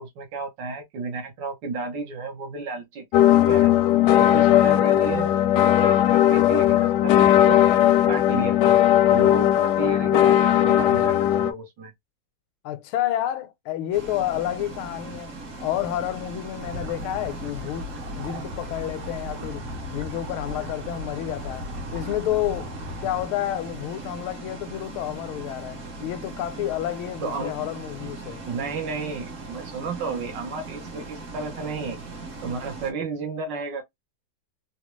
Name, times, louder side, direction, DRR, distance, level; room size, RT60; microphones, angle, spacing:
voice 1, 0.0-3.7 4.2-7.6 8.1-8.8 9.1-11.9 27.2-27.5 28.4-32.0 32.4-33.8, right 4 dB, 65° right, 1.5 m, -32 dB
sound 1, 3.1-11.5, left 12 dB, 75° left, 1.0 m, -18 dB
voice 2, 12.6-15.3 15.6-19.6 19.9-21.7 21.9-22.7 23.0-28.4, left 12 dB, 90° left, 1.5 m, -30 dB
Bus, 13.9-32.9, right 3 dB, 45° right, 1.2 m, -39 dB
sound 2, 16.6-23.3, left 1 dB, 90° right, 2.0 m, -37 dB
4.0 x 2.3 x 3.0 m
omnidirectional pair, 2.3 m